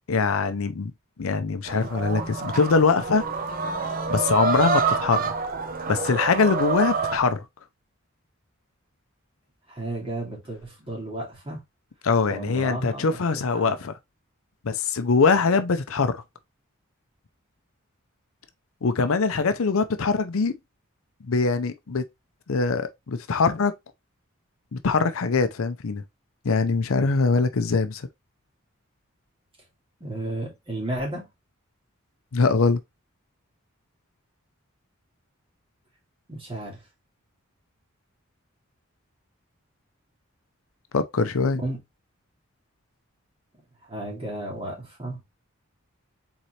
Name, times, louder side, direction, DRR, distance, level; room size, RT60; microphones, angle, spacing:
voice 1, 0.1-0.9 1.2-3.3 4.1-5.2 5.9-7.4 12.0-13.9 14.6-16.2 18.8-20.6 21.2-22.1 22.5-23.7 24.7-26.0 26.4-28.1 32.3-32.8 40.9-41.6, left 4 dB, 75° left, 0.6 m, -23 dB
sound 1, 1.7-7.2, right 4 dB, 40° right, 0.7 m, -27 dB
voice 2, 9.7-11.6 12.3-13.7 30.0-31.3 36.3-36.8 41.6-41.8 43.9-45.2, right 1 dB, 25° right, 2.4 m, -33 dB
4.2 x 3.9 x 3.1 m
head